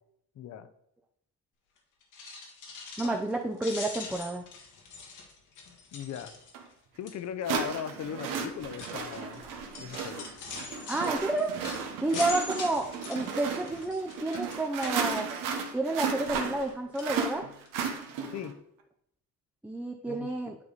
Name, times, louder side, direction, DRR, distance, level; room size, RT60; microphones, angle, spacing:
voice 1, 0.4-0.7 3.0-3.1 5.9-6.3 7.0-9.4 9.8-10.3 12.1-12.3 18.3-18.5 20.1-20.3, left 8 dB, 60° left, 12 dB, 0.7 m, -38 dB
sound 1, 2.0-3.3 3.6-6.7 7.1-7.4 8.1-15.7 16.0-16.7 16.9-17.1 17.7-17.8 18.0-18.1, left 4 dB, 75° left, 1.6 m, -43 dB
voice 2, 3.0-4.4 10.9-11.6 12.0-15.3 15.7-17.4 19.6-20.6, right 2 dB, 5° right, 2 dB, 0.5 m, -30 dB
sound 2, 6.5-6.6 7.4-18.5, right 5 dB, 85° right, 1.1 m, -34 dB
9.8 x 3.5 x 4.0 m, 0.72 s
cardioid pair, 95°, 31 cm